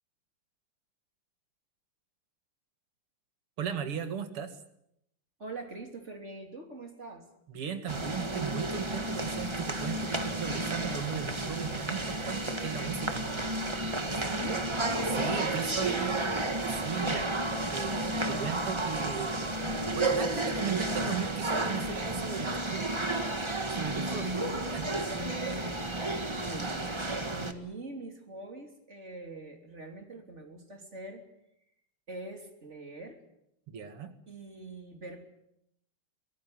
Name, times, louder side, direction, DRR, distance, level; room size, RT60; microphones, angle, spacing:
voice 1, 3.6-4.6 7.5-13.2 15.1-16.4 16.7-17.4 17.7-19.6 19.9-22.9 23.7-24.4 24.7-25.1 33.7-34.1, right 7 dB, 90° right, 9 dB, 2.9 m, -37 dB
voice 2, 5.4-7.3 14.2-14.7 15.7-16.6 25.1-25.5 26.3-31.2 32.1-33.2 34.3-35.3, right 2 dB, 30° right, 4 dB, 3.5 m, -44 dB
sound 1, 7.9-27.5, right 2 dB, 15° right, 1.3 m, -32 dB
24.5 x 17.5 x 9.4 m, 0.78 s
omnidirectional pair, 2.4 m